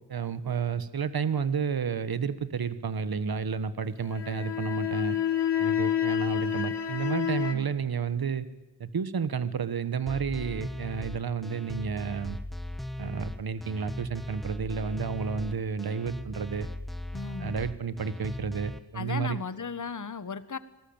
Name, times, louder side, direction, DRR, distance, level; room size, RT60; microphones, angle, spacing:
voice 1, 0.1-5.2 5.6-8.5 8.8-12.4 13.0-16.7 17.4-19.4, right 6 dB, 60° right, 14 dB, 1.4 m, -31 dB
sound 1, 4.0-7.5, left 9 dB, 80° left, 2.0 m, -28 dB
sound 2, 10.1-18.8, left 1 dB, ahead, 1.6 m, -38 dB
voice 2, 17.1-17.5 18.9-20.6, left 5 dB, 45° left, 14 dB, 1.5 m, -36 dB
25.5 x 19.0 x 8.9 m, 1.0 s
wide cardioid pair, 85°, 41 cm